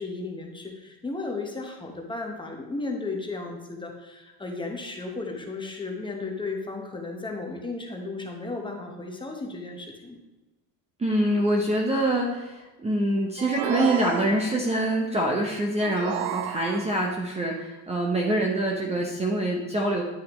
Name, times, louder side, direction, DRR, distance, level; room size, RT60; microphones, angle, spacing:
voice 1, 0.0-10.2, left 3 dB, 10° left, 1 dB, 1.0 m, -34 dB
voice 2, 11.0-20.0, right 1 dB, 15° right, -1 dB, 0.7 m, -25 dB
sound 1, 13.4-14.7 15.8-17.1, right 11 dB, 60° right, 0.5 m, -32 dB
10.0 x 6.4 x 3.1 m, 1.1 s
cardioid pair, 145°, 43 cm